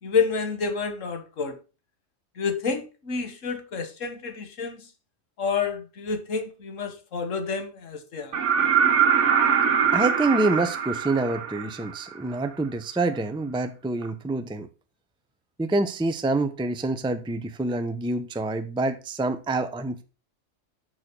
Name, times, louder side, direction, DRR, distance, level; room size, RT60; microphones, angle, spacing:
voice 1, 0.0-1.6 2.4-4.9 5.4-8.3, left 5 dB, 90° left, 1.7 m, -29 dB
sound 1, 8.3-12.1 14.0-14.1, right 7 dB, 70° right, 1.4 m, -22 dB
voice 2, 9.9-14.7 15.6-20.0, right 2 dB, 5° right, 0.6 m, -26 dB
6.8 x 6.4 x 6.1 m
omnidirectional pair, 1.3 m